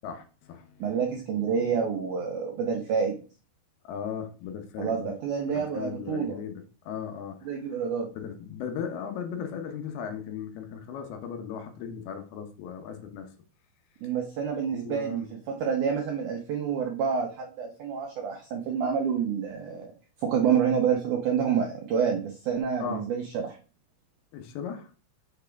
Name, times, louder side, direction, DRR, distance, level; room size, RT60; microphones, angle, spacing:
voice 1, 0.0-0.9 3.8-5.1 5.5-7.5 8.2-13.3 14.7-15.3 22.8-23.1 24.3-24.9, left 7 dB, 75° left, 6 dB, 2.7 m, -37 dB
voice 2, 0.8-3.2 4.8-6.4 7.4-8.1 14.0-19.9 20.2-23.6, right 7 dB, 80° right, 2 dB, 1.8 m, -28 dB
6.6 x 6.1 x 3.4 m, 0.37 s
omnidirectional pair, 4.7 m